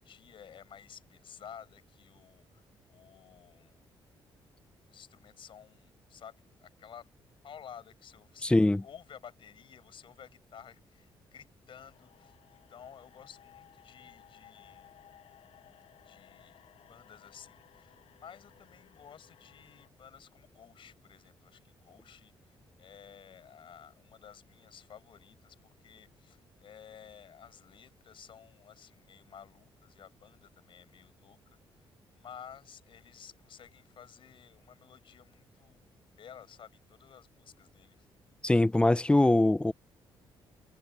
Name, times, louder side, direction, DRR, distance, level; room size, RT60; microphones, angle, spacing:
voice 1, 0.0-2.6 2.9-3.8 4.9-7.1 7.4-15.0 16.0-16.6 16.9-35.8 36.2-38.1, left 8 dB, 60° left, 5.4 m, -53 dB
voice 2, 8.4-8.8 38.4-39.7, left 2 dB, 10° left, 0.7 m, -23 dB
sound 1, 11.7-19.9, left 11 dB, 75° left, 7.2 m, -59 dB
cardioid pair, 85°, 10 cm